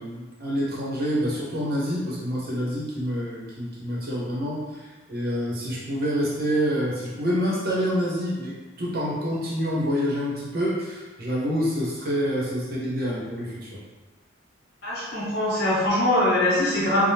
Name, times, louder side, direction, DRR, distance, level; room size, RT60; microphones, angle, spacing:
voice 1, 0.0-8.5 8.8-13.8, equal, 50° right, -6 dB, 0.8 m, -27 dB
voice 2, 14.8-17.1, left 1 dB, 55° left, -9 dB, 1.1 m, -22 dB
2.8 x 2.1 x 3.3 m, 1.3 s
head